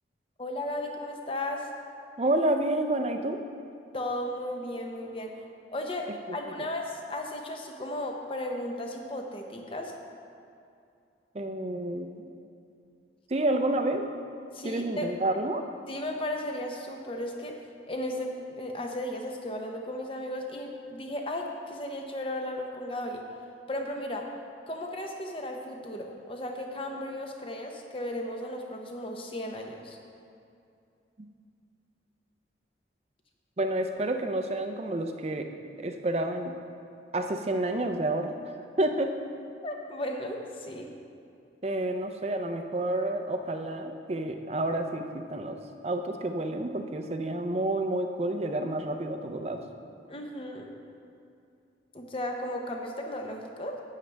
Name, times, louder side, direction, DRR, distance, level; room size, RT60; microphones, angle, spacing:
voice 1, 0.4-1.7 3.9-5.4 5.7-9.9 14.5-15.2 15.9-17.6 17.9-23.2 23.7-24.3 24.7-30.0 39.6-40.9 50.1-50.7 51.9-53.8, left 1 dB, 30° left, 2 dB, 0.8 m, -35 dB
voice 2, 2.2-3.4 11.3-12.2 13.3-14.1 14.6-15.7 33.6-35.5 35.8-36.5 37.1-38.3 38.8-39.1 41.6-45.6 45.8-49.6, right 1 dB, 35° right, 6 dB, 0.5 m, -29 dB
11.5 x 8.4 x 3.4 m, 2.5 s
head